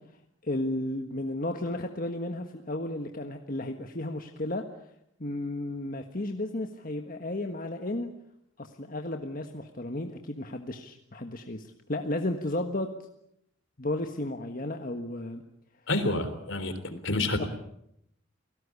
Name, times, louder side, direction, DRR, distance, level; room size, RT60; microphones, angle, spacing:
voice 1, 0.4-4.6 5.2-8.1 8.6-12.9 13.8-15.4 16.9-17.0 17.4-17.5, left 1 dB, 40° left, 4 dB, 1.5 m, -33 dB
voice 2, 15.9-16.7 17.0-17.5, left 2 dB, 65° left, 10 dB, 3.6 m, -28 dB
29.5 x 18.5 x 8.4 m, 0.76 s
head